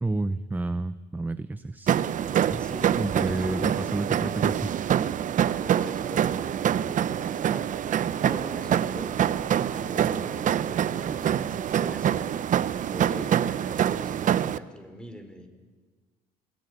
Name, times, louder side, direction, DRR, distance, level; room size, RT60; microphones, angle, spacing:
voice 1, 0.0-2.0 2.5-2.6 3.0-4.7, right 2 dB, 10° right, 13 dB, 0.7 m, -30 dB
sound 1, 1.9-14.6, right 9 dB, 50° right, 0.8 m, -25 dB
voice 2, 2.6-3.7 5.5-9.2 9.7-12.2 12.8-15.5, equal, 5° left, 7 dB, 4.3 m, -42 dB
27.5 x 20.0 x 9.8 m, 1.4 s
cardioid pair, 110°, 17 cm